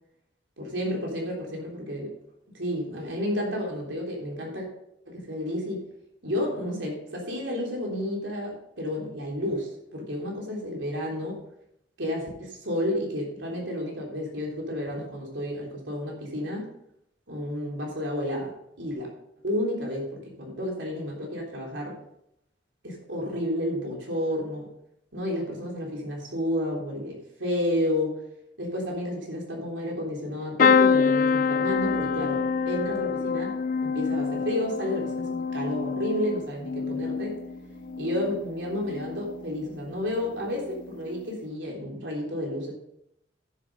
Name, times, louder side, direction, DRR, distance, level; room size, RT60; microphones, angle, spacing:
voice 1, 0.6-2.1 2.5-4.7 5.1-5.8 6.2-11.4 12.0-16.7 17.3-19.1 19.4-22.0 22.8-24.7 25.1-28.2 28.6-33.6 33.8-37.4 38.0-42.7, left 1 dB, 80° right, -1 dB, 3.6 m, -31 dB
sound 1, 30.6-38.4 38.9-39.4 40.7-40.9 41.1-41.2, left 5 dB, 45° left, 0.3 m, -26 dB
sound 2, 31.4-41.3, right 3 dB, 15° right, 3.0 m, -49 dB
10.5 x 7.4 x 5.5 m, 0.78 s
head